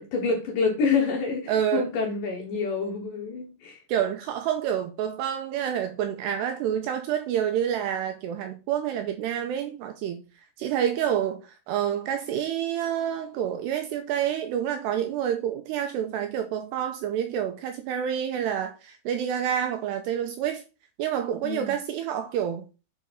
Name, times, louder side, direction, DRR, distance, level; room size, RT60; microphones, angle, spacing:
voice 1, 0.1-3.8 21.4-21.7, left 5 dB, 75° left, 2.0 m, -27 dB
voice 2, 1.5-1.9 3.9-10.2 10.6-20.6 21.0-22.6, right 9 dB, 80° right, 2.5 m, -28 dB
9.4 x 4.4 x 5.0 m
omnidirectional pair, 5.4 m